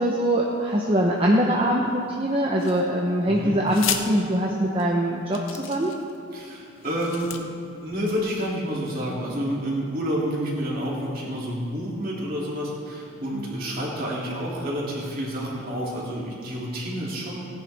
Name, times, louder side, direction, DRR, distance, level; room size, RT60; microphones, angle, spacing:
voice 1, 0.0-5.9 13.3-13.5, right 1 dB, 30° right, -2 dB, 0.8 m, -23 dB
sound 1, 2.6-3.1 3.7-4.0 4.8-4.9 5.3-6.2 6.8-7.4, left 9 dB, 90° left, 0.8 m, -32 dB
voice 2, 3.3-3.6 6.3-7.3 7.8-17.4, equal, 45° right, -5 dB, 2.7 m, -29 dB
17.5 x 10.0 x 3.4 m, 2.6 s
head